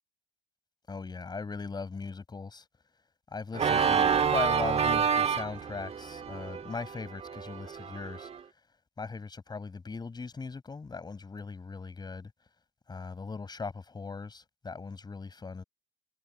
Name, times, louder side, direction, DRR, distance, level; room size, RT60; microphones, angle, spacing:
voice 1, 0.9-2.7 3.3-8.3 9.0-12.3 12.9-15.6, left 4 dB, 25° left, 5.9 m, -39 dB
Organ, 3.5-8.4, right 7 dB, 40° right, 1.7 m, -28 dB
cardioid pair, 110°, 17 cm